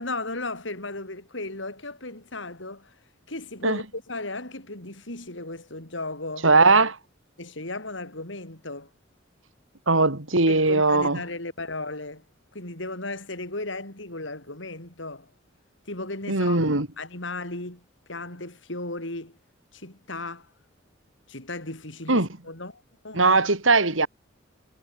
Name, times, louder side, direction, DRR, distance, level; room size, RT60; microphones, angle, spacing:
voice 1, 0.0-2.9 3.3-6.5 7.4-8.9 10.5-12.2 12.5-15.3 15.9-17.8 18.1-19.4 19.7-20.5 21.3-23.3, left 2 dB, 65° left, 5.3 m, -35 dB
voice 2, 6.4-7.0 9.9-11.2 16.3-16.9 22.1-22.3 23.1-24.1, right 3 dB, 80° right, 4.1 m, -19 dB
head